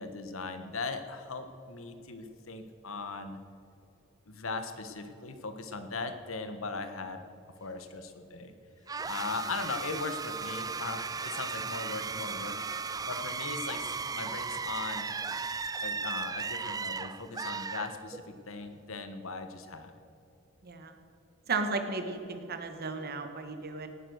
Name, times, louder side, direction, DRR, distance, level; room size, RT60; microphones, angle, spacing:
voice 1, 0.0-3.4 4.3-7.2 7.6-8.5 8.9-12.6 13.1-15.1 15.8-20.0, left 3 dB, 70° left, 9 dB, 1.3 m, -39 dB
sound 1, 8.9-18.4, right 5 dB, 15° right, 0.3 m, -36 dB
voice 2, 21.5-23.9, right 4 dB, 50° right, 7 dB, 1.4 m, -34 dB
18.0 x 10.0 x 6.5 m, 2.7 s
head